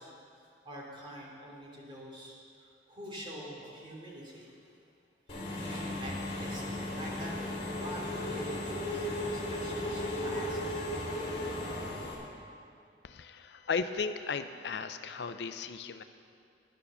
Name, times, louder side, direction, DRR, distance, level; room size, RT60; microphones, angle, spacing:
voice 1, 0.0-4.5 5.6-7.3 7.7-10.6, equal, 30° right, -5 dB, 2.8 m, -45 dB
Engine / Mechanisms, 5.3-12.1, left 1 dB, 35° left, 3.1 m, -35 dB
voice 2, 13.0-16.0, left 5 dB, 70° left, 10 dB, 0.5 m, -35 dB
11.0 x 9.3 x 7.0 m, 2.4 s
head